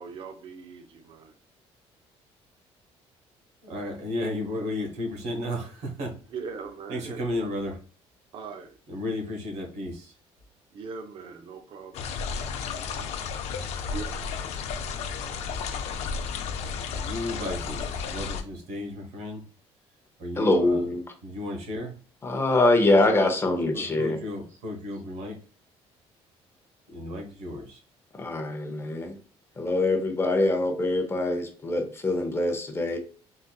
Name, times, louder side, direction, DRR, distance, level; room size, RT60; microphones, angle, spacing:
voice 1, 0.0-1.3 6.3-7.5 8.3-8.7 10.7-12.1 13.9-14.0, right 5 dB, 50° right, 0.5 m, -40 dB
voice 2, 3.6-6.2 6.9-7.8 8.9-10.1 16.9-19.5 20.2-20.8 21.2-21.9 23.7-25.4 26.9-27.8, left 1 dB, 90° right, 1.1 m, -33 dB
sound 1, 11.9-18.4, left 5 dB, 70° left, 0.5 m, -32 dB
voice 3, 20.4-21.0 22.2-24.2 28.2-29.2 29.6-33.0, left 2 dB, 20° left, 0.6 m, -24 dB
3.8 x 2.5 x 2.3 m
cardioid pair, 125°, 11 cm